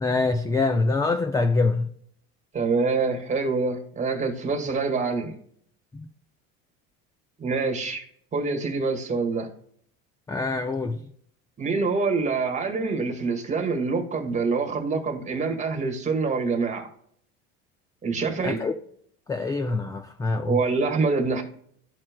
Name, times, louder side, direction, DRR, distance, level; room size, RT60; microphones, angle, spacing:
voice 1, 0.0-1.9 5.9-6.0 10.3-11.0 18.4-18.7 19.3-20.6, left 3 dB, 10° left, 0.4 m, -25 dB
voice 2, 2.5-5.3 7.4-8.0 8.3-9.5 11.6-16.9 18.0-18.6 20.5-21.4, right 4 dB, 25° right, 1.6 m, -25 dB
13.0 x 4.4 x 2.2 m
cardioid pair, 130°, 31 cm